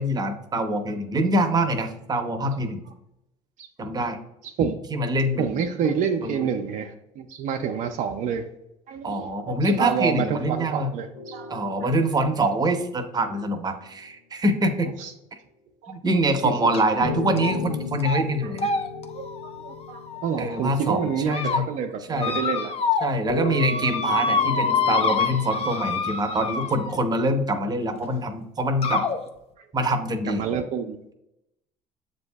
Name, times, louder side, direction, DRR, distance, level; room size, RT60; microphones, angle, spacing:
voice 1, 0.0-2.8 3.8-4.2 4.9-5.5 6.2-6.5 9.0-10.9 11.5-14.9 15.9-18.7 20.4-21.7 22.1-22.3 23.0-29.0 29.7-30.4, right 1 dB, 25° right, 6 dB, 0.7 m, -25 dB
voice 2, 4.4-4.8 5.1-8.5 8.9-11.6 15.0-15.1 15.8-15.9 16.4-16.5 19.1-22.7 29.6-29.7 30.3-31.1, right 7 dB, 60° right, 4 dB, 0.4 m, -28 dB
sound 1, 11.1-13.8 17.0-21.6 23.3-25.9, left 5 dB, 80° left, 0.9 m, -36 dB
sound 2, 16.7-17.0 17.4-17.7 18.0-18.2 18.6-20.5 21.0-21.6 22.2-23.2 23.4-27.0 28.0-28.1 28.8-29.2, left 5 dB, 40° left, 0.6 m, -26 dB
7.3 x 2.7 x 2.2 m, 0.85 s
supercardioid pair, 80°, 15 cm